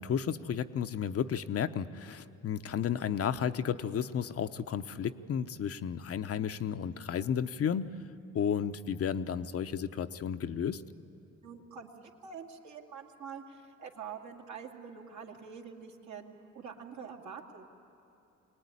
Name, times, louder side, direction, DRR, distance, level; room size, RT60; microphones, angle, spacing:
voice 1, 0.0-8.0 8.3-10.8, left 8 dB, 50° left, 10 dB, 0.8 m, -33 dB
voice 2, 11.4-17.7, right 6 dB, 70° right, 1 dB, 2.4 m, -46 dB
23.5 x 18.5 x 9.8 m, 2.8 s
cardioid pair, 90°, 30 cm